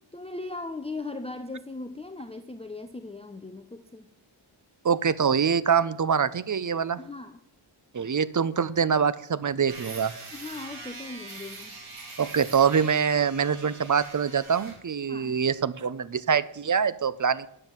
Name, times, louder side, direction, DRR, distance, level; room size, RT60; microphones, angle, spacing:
voice 1, 0.1-4.1 7.0-7.4 10.3-11.8 15.1-15.3, left 3 dB, 10° left, 7 dB, 0.6 m, -38 dB
voice 2, 4.8-7.0 7.9-10.1 12.2-17.5, right 6 dB, 40° right, 16 dB, 0.6 m, -24 dB
sound 1, 9.7-14.8, right 3 dB, 75° right, 3.1 m, -43 dB
9.8 x 7.4 x 7.4 m, 0.76 s
wide cardioid pair, 85°, 49 cm